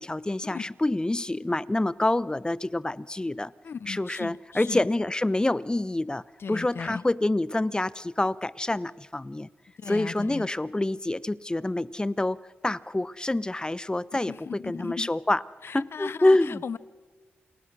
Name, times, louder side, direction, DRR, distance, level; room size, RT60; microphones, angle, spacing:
voice 1, 0.0-3.5 3.9-6.2 6.5-9.5 9.9-15.4 15.7-16.6, left 2 dB, 20° left, 0.8 m, -27 dB
voice 2, 3.6-4.9 6.4-7.0 9.8-10.5 14.3-15.1 15.6-16.8, left 6 dB, 65° left, 0.9 m, -37 dB
29.0 x 28.0 x 6.3 m
cardioid pair, 55°, 4 cm